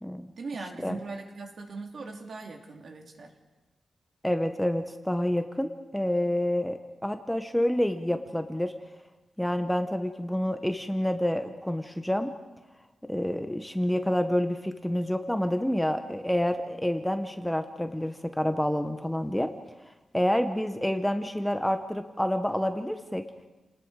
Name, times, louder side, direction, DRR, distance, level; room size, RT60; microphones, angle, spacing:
voice 1, 0.4-3.3, right 3 dB, 55° right, 3 dB, 2.7 m, -40 dB
voice 2, 4.2-8.7 9.4-12.3 13.1-19.5 20.1-23.2, left 1 dB, 5° left, 7 dB, 0.9 m, -28 dB
29.5 x 19.5 x 4.8 m, 1.1 s
wide cardioid pair, 140°, 0 cm